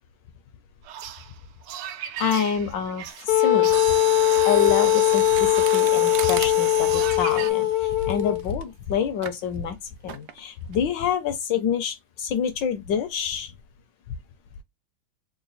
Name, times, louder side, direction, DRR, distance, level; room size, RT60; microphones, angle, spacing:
sound 1, 0.8-7.5, right 10 dB, 90° right, 1.5 m, -39 dB
voice 1, 2.2-3.8 4.4-9.8 10.0-13.5 14.1-14.2, left 7 dB, 70° left, 1.1 m, -27 dB
Wind instrument woodwind instrument, 3.3-8.4, left 12 dB, 85° left, 1.5 m, -20 dB
Mechanisms, 3.6-8.6 9.2-9.4 10.1-10.4 10.7-10.8, right 10 dB, 70° right, 1.0 m, -33 dB
3.9 x 2.1 x 3.9 m
omnidirectional pair, 2.3 m